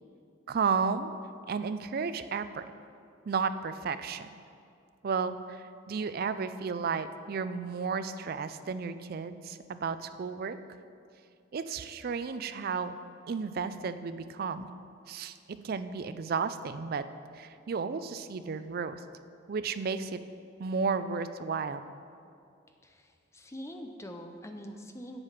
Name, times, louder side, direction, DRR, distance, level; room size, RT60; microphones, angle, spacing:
voice 1, 0.5-1.1 1.5-2.6 3.3-4.3 5.0-10.6 11.5-12.9 13.3-14.8 15.1-17.1 17.3-19.0 19.5-20.2 20.6-21.8, right 5 dB, 50° right, 11 dB, 0.4 m, -33 dB
voice 2, 22.8-25.2, equal, 15° left, 5 dB, 0.5 m, -44 dB
7.9 x 7.6 x 5.7 m, 2.4 s
head